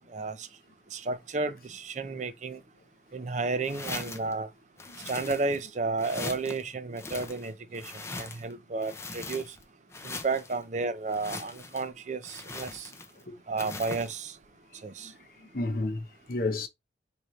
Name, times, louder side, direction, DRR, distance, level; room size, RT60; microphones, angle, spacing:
voice 1, 0.1-0.5 0.9-2.6 3.1-4.5 5.0-9.6 10.0-12.9 13.5-14.4 14.8-15.1, right 3 dB, 40° right, 0.4 m, -32 dB
sound 1, 3.6-4.3 4.8-5.7 6.0-6.6 6.9-8.5 8.8-9.6 9.9-10.6 11.1-11.9 12.2-13.2 13.6-14.2, left 3 dB, 15° left, 0.5 m, -41 dB
voice 2, 15.4-16.7, left 2 dB, 50° left, 0.7 m, -32 dB
4.9 x 2.7 x 3.1 m
head